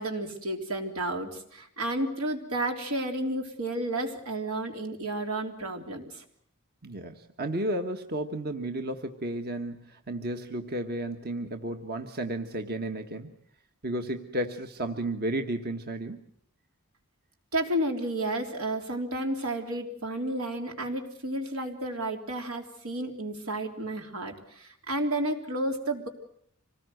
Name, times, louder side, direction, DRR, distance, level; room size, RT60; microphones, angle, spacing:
voice 1, 0.0-6.2 17.5-26.1, right 1 dB, 85° right, 4 dB, 3.5 m, -31 dB
voice 2, 6.8-13.3 13.8-16.2, right 1 dB, 45° right, 6 dB, 1.4 m, -33 dB
26.0 x 19.5 x 7.9 m, 0.67 s
head